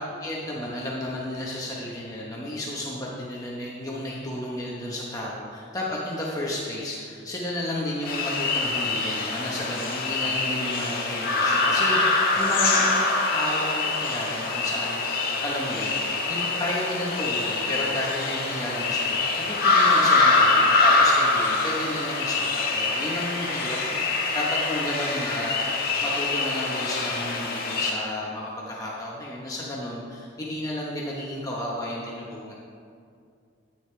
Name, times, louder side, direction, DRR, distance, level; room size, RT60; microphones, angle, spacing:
voice 1, 0.0-13.0 13.3-19.2 19.5-32.6, left 1 dB, 15° left, -5 dB, 1.1 m, -32 dB
sound 1, 8.1-27.9, left 3 dB, 50° left, 1.5 m, -24 dB
13.0 x 9.3 x 3.4 m, 2.4 s
head